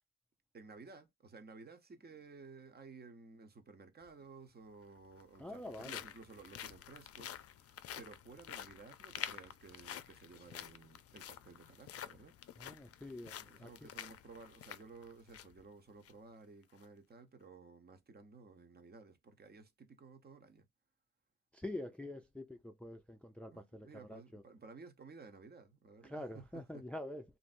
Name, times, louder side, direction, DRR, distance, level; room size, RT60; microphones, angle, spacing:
voice 1, 0.5-12.3 13.4-20.7 23.5-26.9, right 4 dB, 30° right, 1.0 m, -55 dB
sound 1, 4.0-4.1 5.0-15.6 16.0-16.1 16.6-16.9, left 10 dB, 50° left, 0.5 m, -49 dB
voice 2, 5.4-6.0 12.6-13.9 21.5-24.4 26.0-27.2, left 1 dB, 5° left, 0.5 m, -46 dB
3.0 x 2.6 x 2.5 m
cardioid pair, 90°, 30 cm